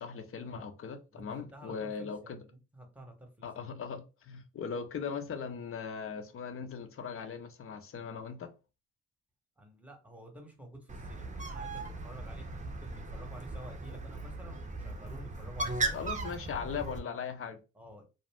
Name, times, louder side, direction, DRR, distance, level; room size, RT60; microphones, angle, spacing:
voice 1, 0.0-2.4 3.4-8.5 15.9-17.6, left 6 dB, 45° left, 0.6 m, -39 dB
voice 2, 1.5-3.8 9.6-16.0 17.7-18.0, right 1 dB, 5° right, 0.9 m, -50 dB
Bird, 10.9-17.0, right 3 dB, 25° right, 0.6 m, -38 dB
2.5 x 2.1 x 3.3 m
cardioid pair, 90°, 30 cm